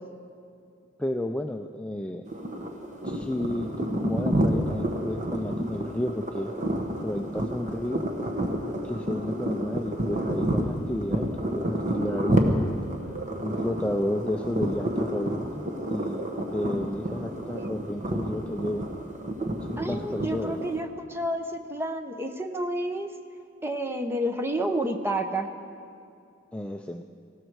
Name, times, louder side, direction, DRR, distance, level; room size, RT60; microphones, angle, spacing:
voice 1, 1.0-2.3 3.0-6.5 7.0-8.1 8.8-12.7 13.4-16.3 16.5-18.8 19.6-20.6 26.5-27.0, left 1 dB, 5° left, 5 dB, 0.4 m, -32 dB
sound 1, 2.3-20.8, right 1 dB, 35° right, 1.2 m, -30 dB
voice 2, 19.8-23.1 23.6-25.5, right 1 dB, 10° right, 6 dB, 0.8 m, -30 dB
19.0 x 16.0 x 4.7 m, 2.4 s
head